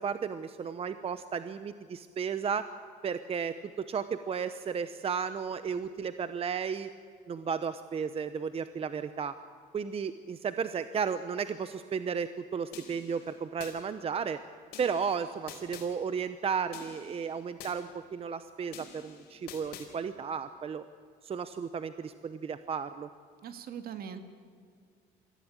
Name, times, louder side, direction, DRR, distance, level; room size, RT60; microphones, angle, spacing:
voice 1, 0.0-2.6 3.0-6.9 7.3-9.3 9.7-14.4 14.8-20.8 21.2-23.1, right 6 dB, 35° right, 11 dB, 0.8 m, -34 dB
sound 1, 12.7-13.7 14.7-15.9 16.7-17.7 18.7-19.9, left 7 dB, 75° left, 4.0 m, -47 dB
voice 2, 23.4-24.2, right 8 dB, 60° right, 8 dB, 2.0 m, -40 dB
23.0 x 15.5 x 8.8 m, 2.1 s
cardioid pair, 110°, 17 cm